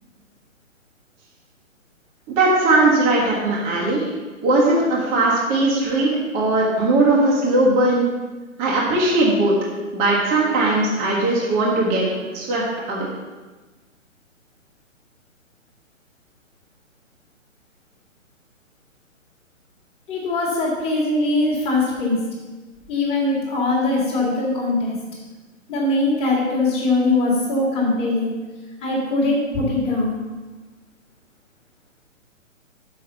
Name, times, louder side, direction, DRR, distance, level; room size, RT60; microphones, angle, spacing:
voice 1, 2.3-4.1 4.4-8.1 8.6-9.5 9.9-12.0 12.3-13.1, right 2 dB, 20° right, -5 dB, 1.2 m, -19 dB
voice 2, 20.1-22.2 22.9-25.0 25.7-28.3 28.8-30.2, left 2 dB, 15° left, -5 dB, 1.8 m, -21 dB
6.2 x 4.9 x 6.8 m, 1.3 s
figure-of-eight pair, 130°, 40 cm